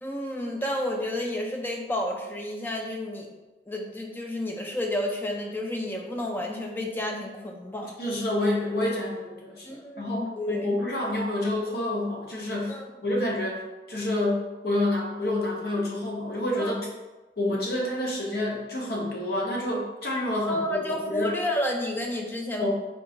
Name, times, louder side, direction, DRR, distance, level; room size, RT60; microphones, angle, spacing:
voice 1, 0.0-3.3 3.7-7.9 9.6-10.8 12.7-12.8 16.6-16.7 20.4-22.7, left 1 dB, 10° left, 1 dB, 0.4 m, -31 dB
voice 2, 8.0-12.8 13.0-13.6 13.9-16.9 17.4-21.4 22.6-22.7, left 1 dB, 60° left, -2 dB, 0.8 m, -28 dB
3.7 x 2.5 x 3.7 m, 1.2 s
head